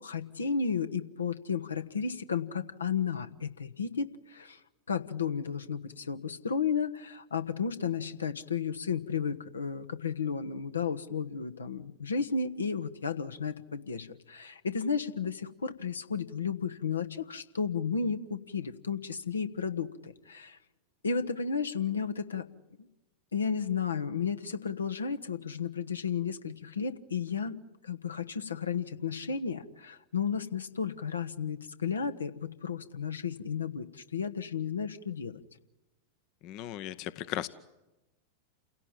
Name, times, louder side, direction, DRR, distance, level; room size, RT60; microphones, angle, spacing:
voice 1, 0.0-4.6 4.9-20.6 21.0-22.5 22.8-22.9 23.3-27.6 27.8-35.4, left 6 dB, 75° left, 9 dB, 1.2 m, -33 dB
voice 2, 36.4-37.5, left 13 dB, 40° left, 15 dB, 0.8 m, -36 dB
29.0 x 17.0 x 9.0 m, 1.0 s
figure-of-eight pair, 90°, 0 cm